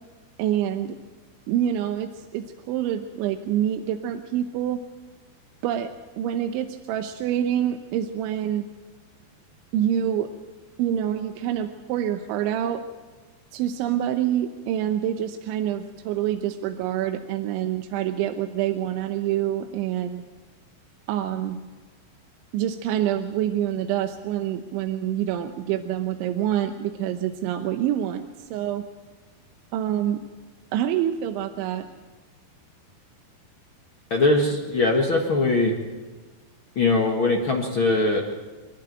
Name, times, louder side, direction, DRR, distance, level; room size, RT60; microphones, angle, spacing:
voice 1, 0.4-1.0 1.5-4.8 5.6-8.6 9.7-10.3 10.8-12.8 13.5-20.2 21.1-21.6 22.5-28.8 29.7-30.2 30.7-31.9, right 10 dB, 90° right, 7 dB, 3.3 m, -26 dB
voice 2, 34.1-35.7 36.7-38.2, left 2 dB, 65° left, 0 dB, 1.2 m, -21 dB
27.0 x 11.5 x 9.0 m, 1.3 s
omnidirectional pair, 5.3 m